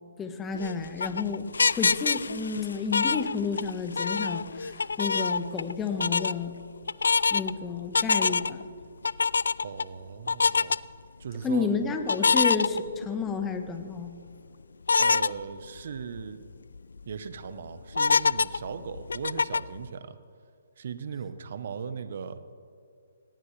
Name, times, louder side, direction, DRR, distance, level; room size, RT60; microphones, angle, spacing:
voice 1, 0.2-1.5 1.7-4.7 5.0-6.5 7.3-8.6 11.4-14.1, left 5 dB, 15° left, 6 dB, 1.2 m, -31 dB
sound 1, 0.5-3.7 4.0-5.7 6.0-6.3 6.9-7.5 7.9-8.6 9.0-9.8 10.3-10.8 12.1-13.3 13.7-13.8 14.9-15.3 15.8-15.9 16.2-16.3 16.8-17.1 17.9-19.8, left 4 dB, 80° left, 0.3 m, -25 dB
voice 2, 9.6-10.7 11.2-11.7 15.0-16.4 17.1-20.2 20.8-22.4, right 6 dB, 60° right, 12 dB, 1.0 m, -38 dB
18.0 x 18.0 x 3.3 m, 2.3 s
hypercardioid pair, 145°, 0 cm